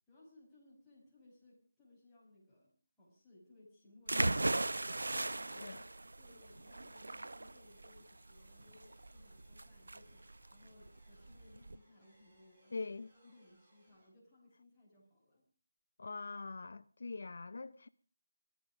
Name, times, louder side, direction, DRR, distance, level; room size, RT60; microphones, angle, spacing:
voice 1, 0.1-4.9 5.3-5.8 6.1-12.8 13.1-15.5, left 2 dB, 5° left, 6.0 m, -63 dB
sound 1, 4.1-11.8, right 2 dB, 85° right, 0.8 m, -38 dB
sound 2, 6.2-14.1, right 1 dB, 20° right, 7.7 m, -70 dB
voice 2, 12.7-13.1 16.0-17.9, left 3 dB, 55° left, 0.7 m, -43 dB
18.5 x 14.5 x 5.0 m
figure-of-eight pair, 175°, 0 cm